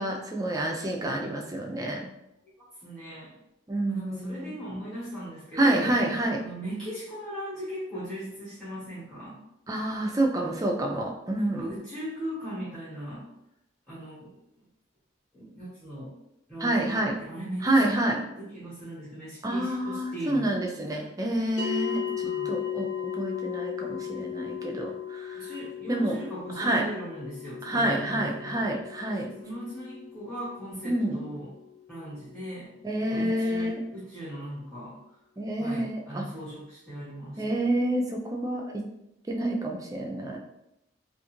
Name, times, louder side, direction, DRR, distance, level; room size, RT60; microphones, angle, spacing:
voice 1, 0.0-2.1 3.7-4.5 5.6-6.4 9.7-11.7 16.6-17.2 17.6-18.2 19.4-22.0 22.5-25.5 25.9-26.2 26.6-26.8 27.6-29.3 30.8-31.2 32.8-33.8 35.4-36.2 37.4-38.8 39.3-40.4, right 1 dB, 20° right, 0 dB, 0.3 m, -28 dB
voice 2, 2.8-3.3 3.9-5.9 6.4-9.4 11.3-13.3 13.9-14.3 15.3-16.1 16.5-20.5 21.9-22.6 25.4-28.6 29.2-31.5 31.9-32.7 33.0-35.0 35.6-37.6, equal, 5° left, -12 dB, 0.8 m, -39 dB
sound 1, 21.6-32.1, left 8 dB, 40° left, 0.7 m, -36 dB
2.4 x 2.3 x 2.9 m, 0.85 s
head